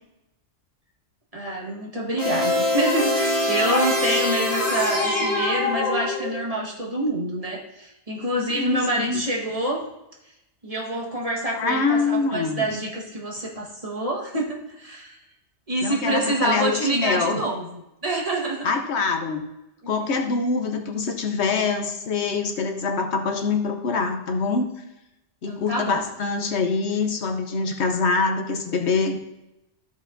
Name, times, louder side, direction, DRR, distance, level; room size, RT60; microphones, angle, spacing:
voice 1, 1.3-9.8 10.6-15.2 15.7-17.7 18.0-18.7 19.8-19.9 25.5-26.0, right 1 dB, 30° right, -3 dB, 1.6 m, -27 dB
sound 1, 2.2-6.5, left 2 dB, 30° left, 1.7 m, -24 dB
voice 2, 8.5-9.2 11.6-12.7 15.8-17.4 18.6-19.4 19.9-24.7 25.4-29.3, left 4 dB, 70° left, 5 dB, 1.1 m, -24 dB
14.0 x 5.2 x 2.6 m, 0.90 s
omnidirectional pair, 1.2 m